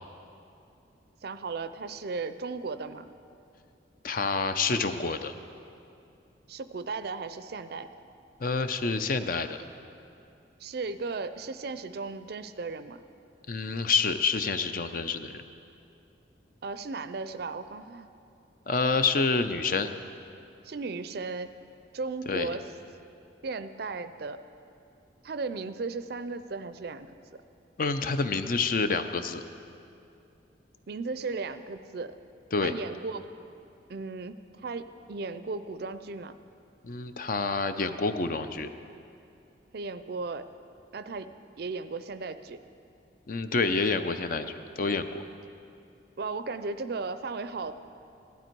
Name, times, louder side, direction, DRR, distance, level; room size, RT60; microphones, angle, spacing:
voice 1, 1.2-3.1 6.5-7.9 10.6-13.0 16.6-18.1 20.6-21.5 21.9-22.6 23.4-24.4 25.2-27.1 30.9-32.2 32.6-33.3 33.9-36.3 39.7-40.5 40.9-41.3 41.6-42.6 46.2-47.8, right 4 dB, 55° right, 12 dB, 0.4 m, -36 dB
voice 2, 4.0-5.3 8.4-9.6 13.5-15.4 18.7-19.9 22.3-22.5 27.8-29.4 32.5-32.7 36.8-38.7 43.3-45.2, left 4 dB, 45° left, 9 dB, 0.5 m, -28 dB
16.0 x 12.0 x 4.5 m, 2.6 s
head